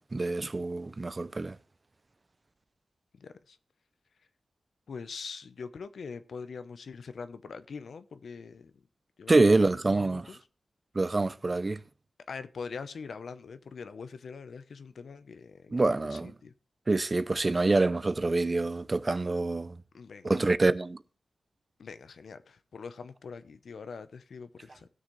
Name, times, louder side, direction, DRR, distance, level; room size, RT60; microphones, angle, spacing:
voice 1, 0.0-1.6 9.3-10.3 10.9-11.8 15.7-16.3 16.9-19.7 20.2-21.0, right 3 dB, 35° right, 0.6 m, -26 dB
voice 2, 3.1-3.6 4.9-8.7 9.2-9.9 10.3-10.4 12.3-16.5 19.9-20.4 21.8-24.9, left 5 dB, 75° left, 0.7 m, -43 dB
19.0 x 6.5 x 3.2 m
wide cardioid pair, 80°, 0 cm